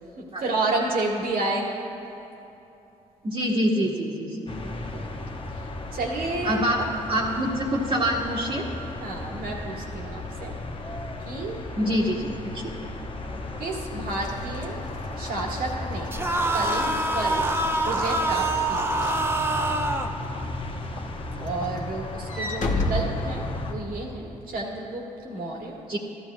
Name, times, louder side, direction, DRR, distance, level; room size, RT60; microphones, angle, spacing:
voice 1, 0.2-1.8 4.6-5.2 5.5-6.9 9.0-10.5 11.2-12.3 13.6-14.8 15.1-16.1 16.5-17.5 17.8-19.1 21.4-25.8, right 2 dB, 70° right, -2 dB, 1.9 m, -31 dB
voice 2, 3.2-4.5 6.4-6.8 7.1-8.6 11.8-12.7 13.3-13.4 25.9-26.0, equal, 40° right, -6 dB, 1.5 m, -25 dB
sound 1, 4.5-23.7, left 2 dB, 35° left, 1.0 m, -35 dB
Walk footsteps / Slam, 14.1-19.9 20.4-20.6 21.0-24.0, left 2 dB, 55° left, 1.2 m, -33 dB
sound 2, 16.1-20.1, right 2 dB, 15° right, 0.8 m, -25 dB
14.5 x 12.0 x 2.4 m, 2.9 s
supercardioid pair, 55°, 16 cm